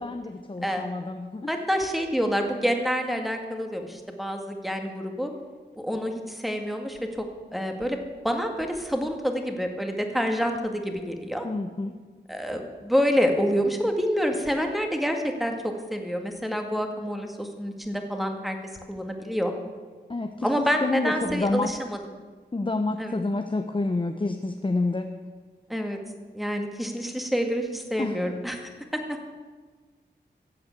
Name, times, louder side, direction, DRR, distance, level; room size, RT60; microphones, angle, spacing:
voice 1, 0.0-1.5 11.4-11.9 20.1-21.7 22.5-25.1 28.0-28.2, left 2 dB, 30° left, 5 dB, 0.8 m, -28 dB
voice 2, 1.5-5.3 5.8-7.3 7.5-8.0 8.2-11.5 12.3-18.6 18.9-19.5 20.4-22.0 23.0-23.2 25.7-26.0 26.3-29.2, equal, ahead, 4 dB, 2.0 m, -27 dB
15.0 x 7.8 x 8.4 m, 1.4 s
wide cardioid pair, 75°, 18 cm